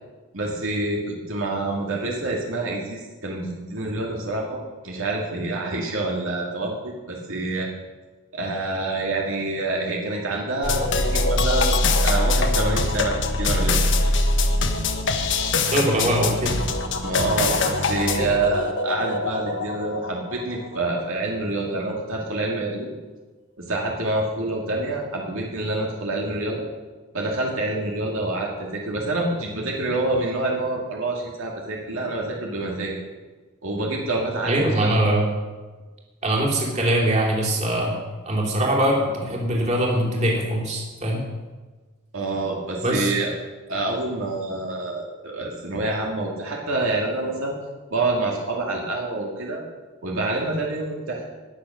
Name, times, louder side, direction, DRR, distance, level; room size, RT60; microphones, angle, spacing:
voice 1, 0.3-7.7 8.3-11.7 12.0-13.9 17.0-22.9 23.6-26.7 27.1-33.0 33.6-35.0 42.1-43.3 43.7-47.5 47.9-49.6 50.0-51.2, right 2 dB, 70° right, -2 dB, 2.2 m, -27 dB
sound 1, 10.6-20.8, left 2 dB, 60° left, 1.3 m, -23 dB
voice 2, 15.7-16.6 34.5-35.2 36.2-38.0 38.2-41.2 42.8-43.1, right 1 dB, 35° right, -2 dB, 3.2 m, -22 dB
19.5 x 7.0 x 6.2 m, 1.3 s
head